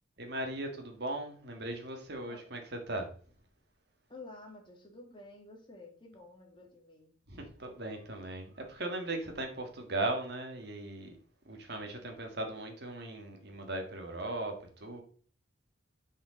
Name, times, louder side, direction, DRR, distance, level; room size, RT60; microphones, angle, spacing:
voice 1, 0.2-2.6 2.9-3.1 7.3-11.1 11.5-15.0, right 2 dB, 55° right, 4 dB, 1.7 m, -38 dB
voice 2, 4.1-7.1, left 2 dB, 25° left, 1 dB, 2.1 m, -51 dB
6.3 x 5.0 x 5.1 m, 0.43 s
head